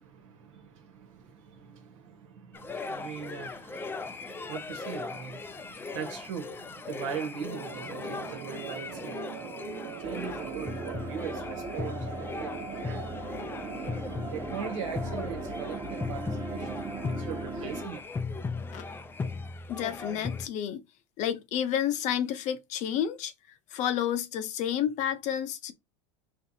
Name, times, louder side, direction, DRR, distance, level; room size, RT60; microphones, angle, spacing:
voice 1, 0.0-9.4 9.9-12.1 12.4-13.0 14.3-16.8 17.1-18.0 18.3-18.4, right 7 dB, 85° right, 1.4 m, -40 dB
sound 1, 2.5-20.5, left 4 dB, 15° left, 0.4 m, -38 dB
sound 2, 7.4-15.8, right 7 dB, 65° right, 1.1 m, -42 dB
sound 3, 10.0-17.9, right 2 dB, 20° right, 1.0 m, -39 dB
voice 2, 19.7-20.8 21.2-23.3 23.7-25.7, left 10 dB, 50° left, 0.7 m, -30 dB
4.3 x 3.3 x 2.7 m
supercardioid pair, 125°, 16 cm